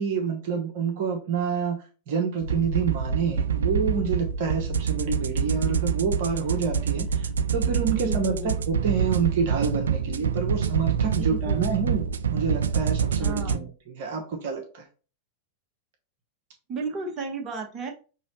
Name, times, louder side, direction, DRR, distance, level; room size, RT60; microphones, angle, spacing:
voice 1, 0.0-12.0 12.3-14.8, right 5 dB, 50° right, 2 dB, 1.0 m, -28 dB
sound 1, 2.4-13.6, right 7 dB, 65° right, 0.3 m, -26 dB
voice 2, 7.8-8.6 11.1-11.7 13.2-13.7 16.7-17.9, right 3 dB, 30° right, 3 dB, 1.1 m, -34 dB
5.3 x 3.1 x 3.0 m, 0.35 s
figure-of-eight pair, 90°, 0 cm